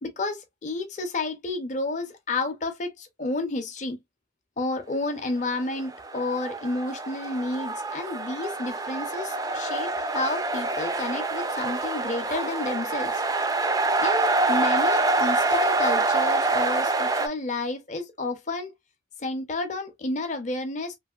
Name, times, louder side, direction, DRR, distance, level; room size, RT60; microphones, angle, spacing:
voice 1, 0.0-4.0 4.6-13.2 14.0-18.7 19.2-21.0, left 2 dB, 40° left, 0.7 m, -31 dB
sound 1, 5.8-17.3, right 2 dB, 20° right, 0.4 m, -26 dB
3.3 x 2.5 x 2.4 m
head